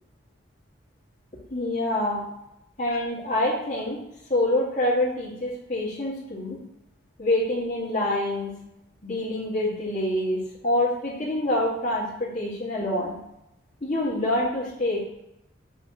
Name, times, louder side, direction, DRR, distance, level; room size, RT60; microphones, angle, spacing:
voice 1, 1.5-2.2 2.8-4.0 4.3-6.6 7.2-8.5 9.0-13.2 13.8-15.0, left 1 dB, 40° left, -5 dB, 2.2 m, -26 dB
7.1 x 3.4 x 5.6 m, 0.84 s
head